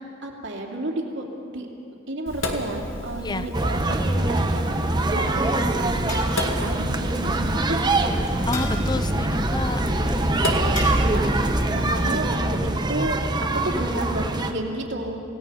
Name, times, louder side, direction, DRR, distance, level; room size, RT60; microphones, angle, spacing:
voice 1, 0.2-1.7 2.1-8.2 10.1-10.2 11.1-11.3 11.7-15.2, right 1 dB, 65° right, 1 dB, 2.8 m, -31 dB
Sink (filling or washing), 2.3-12.2, left 1 dB, 70° left, 2.1 m, -33 dB
sound 1, 3.5-14.5, right 2 dB, 20° right, 1.0 m, -24 dB
sound 2, 6.1-6.6 8.5-9.0 10.8-11.2, left 2 dB, 40° left, 5.1 m, -36 dB
voice 2, 8.5-10.3, left 3 dB, 20° left, 12 dB, 0.6 m, -30 dB
28.0 x 17.5 x 5.7 m, 2.6 s
head